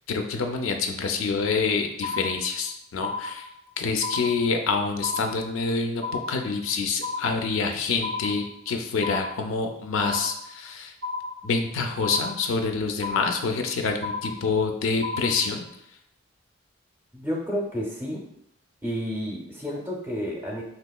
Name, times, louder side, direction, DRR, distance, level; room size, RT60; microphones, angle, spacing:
voice 1, 0.1-3.5 3.8-6.0 6.3-10.9 11.4-15.6, left 4 dB, 75° left, 5 dB, 0.4 m, -27 dB
sound 1, 1.4-1.7 2.0-2.7 3.0-3.7 4.0-4.7 5.0-5.7 6.0-6.7 7.0-7.7 8.0-8.7 9.0-9.7 10.0-10.7 11.0-11.7 12.0-12.7 13.0-13.7 14.0-14.7 15.0-15.7, left 3 dB, 70° right, 0.5 m, -34 dB
voice 2, 17.1-18.2 18.8-20.6, equal, 10° right, -3 dB, 0.5 m, -30 dB
3.5 x 2.8 x 2.2 m, 0.74 s
head